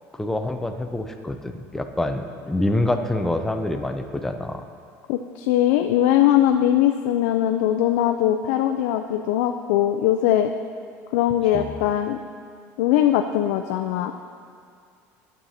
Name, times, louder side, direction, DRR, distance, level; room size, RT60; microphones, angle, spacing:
voice 1, 0.1-4.6 11.5-11.7, left 1 dB, 5° left, 6 dB, 0.4 m, -26 dB
voice 2, 5.1-10.5 11.1-12.2 12.8-14.1, left 11 dB, 90° left, 6 dB, 0.3 m, -20 dB
11.5 x 7.3 x 2.8 m, 2.4 s
cardioid pair, 140°, 7 cm